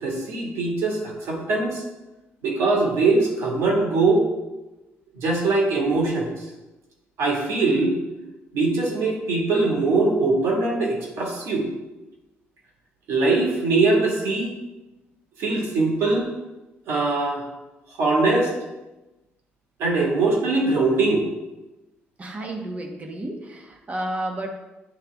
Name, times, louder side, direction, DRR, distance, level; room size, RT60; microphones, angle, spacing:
voice 1, 0.0-1.8 2.4-4.3 5.1-6.3 7.2-7.9 8.5-11.7 13.1-14.5 15.4-16.3 16.9-17.5 18.0-18.5 19.8-21.2, right 3 dB, 85° right, -2 dB, 1.8 m, -22 dB
voice 2, 22.2-24.5, right 1 dB, 30° right, 2 dB, 1.1 m, -31 dB
9.7 x 3.3 x 3.5 m, 1.0 s
cardioid pair, 120°, 5 cm